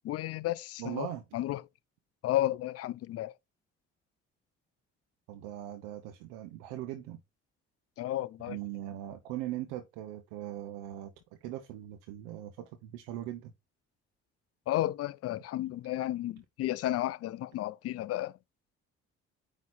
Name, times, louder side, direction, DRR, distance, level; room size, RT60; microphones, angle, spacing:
voice 1, 0.0-1.1 1.3-1.6 2.2-3.3 8.0-8.6 14.7-18.4, left 14 dB, 45° left, 0.5 m, -32 dB
voice 2, 0.8-1.2 5.3-7.2 8.5-11.1 11.4-13.5, right 13 dB, 70° right, 0.8 m, -40 dB
9.1 x 3.1 x 4.2 m
hypercardioid pair, 50°, 34 cm